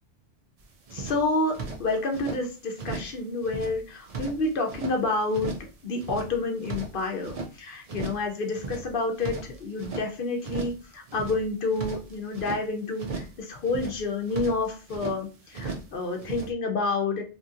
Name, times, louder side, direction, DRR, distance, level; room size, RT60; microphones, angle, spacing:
sound 1, 0.6-0.7 0.9-2.4 2.8-3.2 3.4-5.0 5.3-5.7 6.0-7.5 7.9-8.3 8.5-10.1 10.4-10.8 11.1-12.6 13.0-13.4 13.6-15.2 15.5-15.9 16.2-16.5, right 4 dB, 50° right, 0.4 m, -36 dB
voice 1, 0.9-1.5 1.8-5.5 5.8-17.2, left 3 dB, 55° left, 3 dB, 0.7 m, -29 dB
2.9 x 2.6 x 2.4 m, 0.34 s
omnidirectional pair, 1.2 m